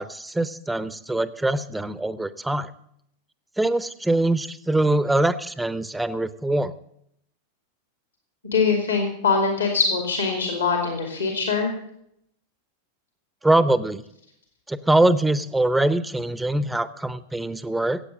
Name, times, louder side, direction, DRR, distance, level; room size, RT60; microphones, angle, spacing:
voice 1, 0.0-2.7 3.6-6.7 13.4-14.0 14.7-18.0, right 2 dB, 5° right, 16 dB, 0.7 m, -23 dB
voice 2, 8.5-11.7, left 5 dB, 70° left, 3 dB, 2.5 m, -23 dB
15.5 x 8.4 x 7.5 m, 0.74 s
figure-of-eight pair, 90°, 0 cm